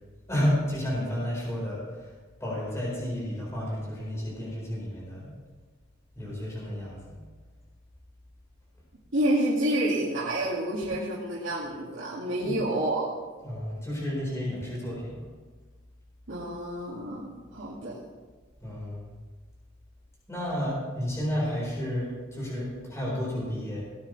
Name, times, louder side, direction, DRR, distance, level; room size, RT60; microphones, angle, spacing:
voice 1, 0.3-2.1 2.4-5.3 6.1-7.2 12.4-12.6 13.3-15.2 18.6-19.1 20.3-23.8, equal, 15° left, -6 dB, 4.7 m, -31 dB
voice 2, 9.1-13.1 16.3-18.0, right 1 dB, 80° right, -8 dB, 2.3 m, -28 dB
18.0 x 9.4 x 3.4 m, 1.3 s
head